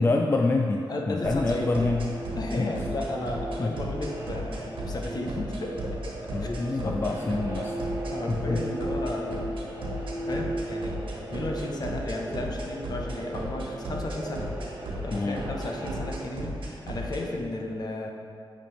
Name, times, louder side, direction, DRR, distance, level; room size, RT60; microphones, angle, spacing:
voice 1, 0.0-2.1 2.6-2.7 3.6-3.7 6.3-7.8 8.3-8.6 15.1-15.4, left 3 dB, 25° left, 2 dB, 0.3 m, -26 dB
voice 2, 0.9-1.7 2.4-6.0 6.4-7.0 8.1-9.4 9.9-14.5 15.0-18.1, left 2 dB, 50° left, 1 dB, 0.9 m, -34 dB
sound 1, 1.2-16.2, right 1 dB, 40° right, 1.4 m, -37 dB
sound 2, 1.2-17.2, right 1 dB, 70° right, 1.4 m, -34 dB
8.7 x 5.2 x 3.2 m, 2.4 s
wide cardioid pair, 115°, 9 cm